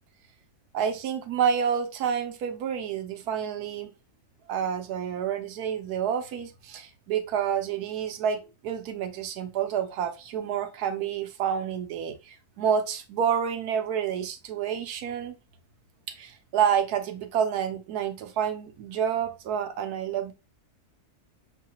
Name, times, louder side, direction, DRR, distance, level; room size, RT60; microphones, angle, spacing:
voice 1, 0.7-3.9 4.5-15.4 16.1-20.3, right 8 dB, 90° right, 1.2 m, -29 dB
6.5 x 2.2 x 2.9 m
omnidirectional pair, 1.6 m